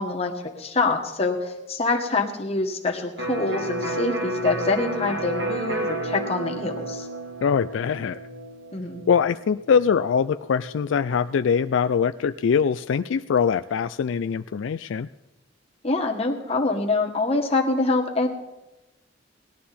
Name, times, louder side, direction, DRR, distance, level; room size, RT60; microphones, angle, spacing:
voice 1, 0.0-7.1 8.7-9.0 15.8-18.3, left 3 dB, 30° left, 1 dB, 1.7 m, -25 dB
Electric guitar, 3.2-10.8, right 1 dB, 65° right, 2.7 m, -31 dB
voice 2, 7.4-8.2 9.1-15.1, left 6 dB, 80° left, 11 dB, 0.4 m, -23 dB
19.0 x 11.5 x 4.3 m, 1.0 s
head